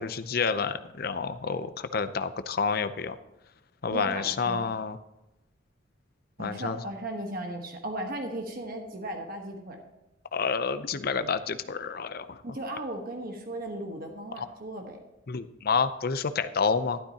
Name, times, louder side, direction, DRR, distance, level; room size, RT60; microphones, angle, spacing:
voice 1, 0.0-3.2 3.8-5.0 6.4-6.8 10.3-12.4 15.3-17.0, left 5 dB, 50° left, 11 dB, 0.5 m, -29 dB
voice 2, 3.9-4.7 6.4-9.8 12.4-15.0, right 1 dB, 50° right, 3 dB, 1.2 m, -36 dB
12.0 x 11.5 x 2.8 m, 0.97 s
head